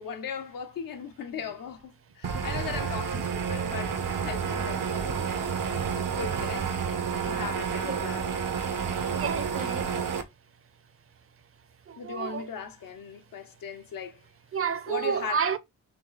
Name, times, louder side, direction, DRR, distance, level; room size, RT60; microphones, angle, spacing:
voice 1, 0.0-5.3 6.0-6.7 7.1-8.3 9.6-9.7 12.0-14.2 14.9-15.4, left 6 dB, 80° left, 0.9 m, -38 dB
sound 1, 2.2-10.2, right 6 dB, 75° right, 1.0 m, -30 dB
voice 2, 9.1-9.9 11.9-12.5 14.5-15.6, right 7 dB, 40° right, 0.7 m, -30 dB
3.8 x 3.1 x 3.9 m
cardioid pair, 80°, 33 cm